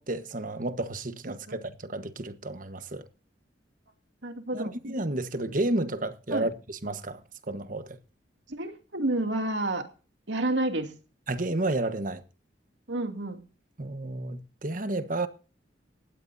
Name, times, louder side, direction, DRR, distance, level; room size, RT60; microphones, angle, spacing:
voice 1, 0.0-3.0 4.5-7.2 7.5-8.0 11.3-12.2 13.8-15.3, right 2 dB, 45° right, 1.3 m, -31 dB
voice 2, 1.3-1.6 4.2-4.7 6.3-6.5 8.5-9.9 10.3-10.9 12.9-13.4, right 2 dB, 80° right, 2.6 m, -30 dB
19.0 x 16.0 x 2.7 m
head